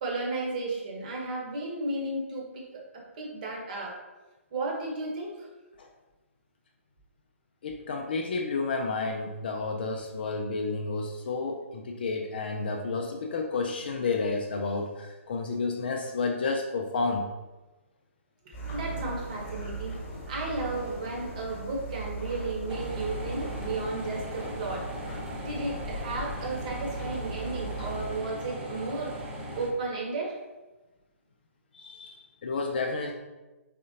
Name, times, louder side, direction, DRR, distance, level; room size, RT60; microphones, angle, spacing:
voice 1, 0.0-4.0 4.5-5.5 18.4-20.0 20.3-24.9 25.3-29.1 29.5-30.4, right 2 dB, 35° right, -1 dB, 1.1 m, -34 dB
voice 2, 7.6-17.3 31.7-33.1, left 3 dB, 45° left, 2 dB, 0.4 m, -31 dB
sound 1, 18.5-28.2, right 2 dB, 20° left, 1.2 m, -38 dB
sound 2, 22.7-29.7, equal, 10° right, 0.6 m, -39 dB
4.2 x 3.6 x 2.8 m, 1.1 s
figure-of-eight pair, 130°, 8 cm